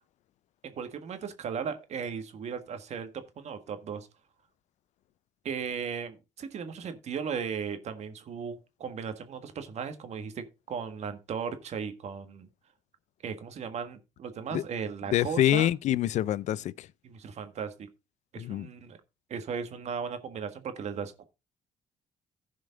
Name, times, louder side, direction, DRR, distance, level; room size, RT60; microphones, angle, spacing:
voice 1, 0.6-4.1 5.4-12.5 13.2-15.7 17.0-17.9 18.3-19.0 19.3-21.2, right 6 dB, 60° right, 1.6 m, -36 dB
voice 2, 15.1-16.9 18.4-18.7, left 12 dB, 65° left, 0.5 m, -26 dB
15.0 x 5.1 x 3.9 m
supercardioid pair, 75°, 13 cm